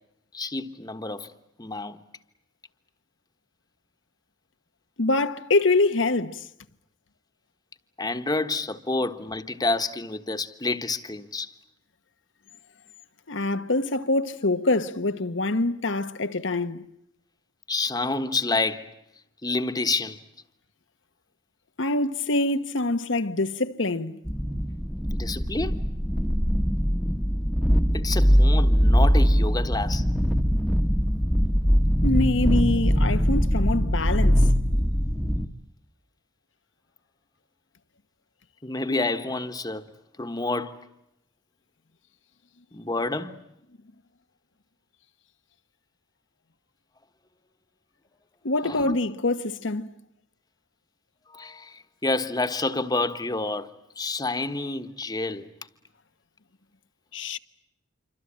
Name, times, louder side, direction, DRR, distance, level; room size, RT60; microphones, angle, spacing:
voice 1, 0.3-1.3 1.6-2.0 8.0-11.5 17.7-18.9 19.4-20.2 25.2-25.8 27.9-30.0 38.6-39.8 40.2-40.8 42.7-43.4 48.6-49.0 51.3-53.7 54.0-55.4, left 3 dB, 20° left, 1.4 m, -28 dB
voice 2, 5.0-6.4 13.3-16.8 21.8-24.2 32.0-34.4 48.4-49.9 57.1-57.4, left 2 dB, 80° left, 1.2 m, -25 dB
sound 1, 24.3-35.5, equal, ahead, 1.3 m, -22 dB
27.5 x 25.0 x 8.7 m
head